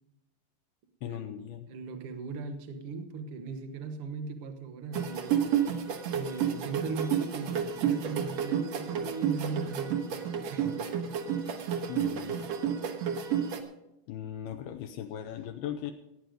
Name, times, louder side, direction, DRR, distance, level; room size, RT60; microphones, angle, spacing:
voice 1, 1.0-1.7 11.9-12.4 14.1-15.9, left 10 dB, 80° left, 5 dB, 2.6 m, -38 dB
voice 2, 1.7-5.7 6.1-10.8, right 4 dB, 85° right, 6 dB, 1.2 m, -38 dB
sound 1, 4.9-13.6, right 8 dB, 70° right, 1.6 m, -31 dB
16.5 x 9.3 x 5.2 m, 0.89 s
omnidirectional pair, 4.6 m